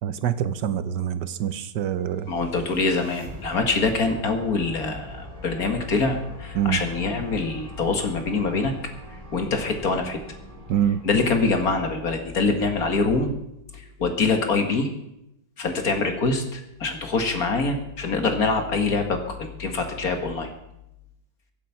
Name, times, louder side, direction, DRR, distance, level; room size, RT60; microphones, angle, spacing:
voice 1, 0.0-2.3 6.5-6.8 10.7-11.0, right 9 dB, 85° right, 12 dB, 1.5 m, -25 dB
voice 2, 2.3-8.7 9.3-10.2 11.0-13.3 14.0-14.9 15.6-20.5, left 3 dB, 55° left, 5 dB, 2.2 m, -24 dB
sound 1, 2.3-12.5, right 1 dB, 35° right, 4.7 m, -43 dB
23.0 x 8.4 x 5.8 m, 0.83 s
omnidirectional pair, 1.8 m